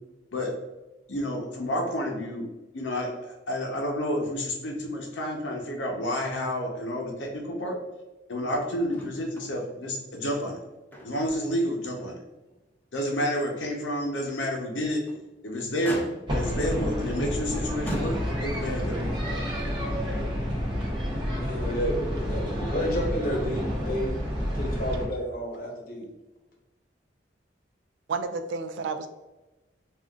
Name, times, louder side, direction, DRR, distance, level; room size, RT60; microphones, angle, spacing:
voice 1, 1.1-2.5 2.7-7.8 8.3-10.6 11.0-12.2 12.9-15.0 15.4-16.0 16.3-19.0, equal, 85° left, 1 dB, 0.7 m, -30 dB
Motor vehicle (road), 8.9-9.5 9.8-9.9 10.5-11.4 11.8-12.0 12.5-12.6 14.8-15.3 15.8-16.5 17.3-17.4 17.9-18.7 19.7-19.8, equal, 10° left, 0.4 m, -38 dB
sound 1, 16.3-25.1, equal, 25° right, 0.7 m, -29 dB
voice 2, 21.2-24.1 24.5-26.1, equal, 50° left, -1 dB, 0.8 m, -31 dB
voice 3, 28.1-29.1, right 4 dB, 85° right, 9 dB, 0.3 m, -31 dB
3.6 x 2.4 x 2.3 m, 1.1 s
head